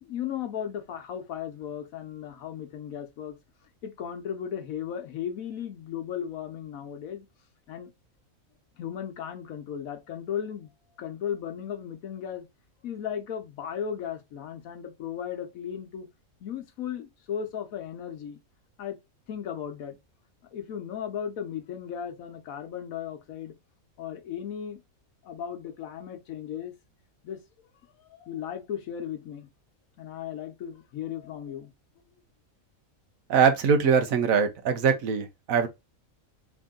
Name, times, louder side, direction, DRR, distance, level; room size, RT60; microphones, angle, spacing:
voice 1, 0.0-3.4 3.8-7.3 7.7-7.9 8.8-10.7 11.0-12.5 12.8-16.1 16.4-18.4 18.8-19.0 19.3-20.0 20.5-23.5 24.0-24.8 25.2-26.7 27.2-27.4 28.1-29.5 30.0-31.7, left 9 dB, 80° left, 1.2 m, -36 dB
voice 2, 33.3-35.7, right 6 dB, 75° right, 1.2 m, -22 dB
3.6 x 2.6 x 3.6 m
omnidirectional pair, 1.5 m